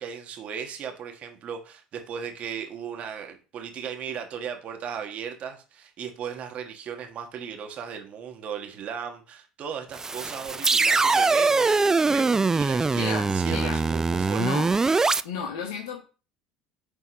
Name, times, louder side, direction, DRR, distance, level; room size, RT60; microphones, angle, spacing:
voice 1, 0.0-14.5, right 7 dB, 45° right, 4 dB, 1.3 m, -36 dB
sound 1, 9.9-15.2, right 3 dB, 15° right, 0.3 m, -22 dB
voice 2, 13.0-13.8 14.4-14.7 15.2-16.0, left 5 dB, 70° left, 1 dB, 1.1 m, -32 dB
9.7 x 3.6 x 3.0 m, 0.35 s
hypercardioid pair, 70°, 3 cm